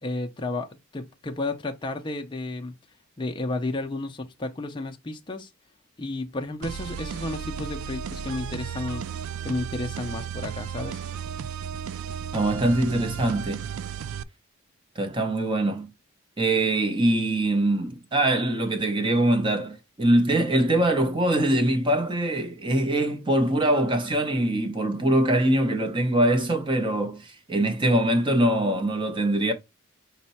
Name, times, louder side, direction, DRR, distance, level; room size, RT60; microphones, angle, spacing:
voice 1, 0.0-2.8 3.2-5.5 6.0-9.1 9.4-11.0, left 2 dB, 20° left, 0.4 m, -32 dB
sound 1, 6.6-14.2, right 8 dB, 75° right, 0.3 m, -34 dB
voice 2, 12.3-13.6 15.0-15.9 16.4-29.5, right 1 dB, 20° right, 0.6 m, -23 dB
5.3 x 2.1 x 4.0 m
head